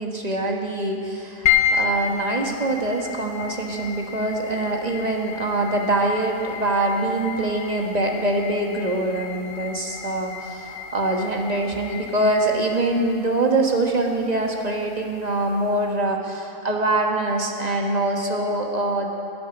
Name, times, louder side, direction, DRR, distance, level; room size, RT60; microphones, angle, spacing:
voice 1, 0.0-19.1, right 2 dB, 30° right, 1 dB, 1.3 m, -24 dB
sound 1, 1.4-15.9, left 8 dB, 55° left, 1.1 m, -31 dB
12.0 x 8.6 x 9.7 m, 2.7 s
omnidirectional pair, 1.4 m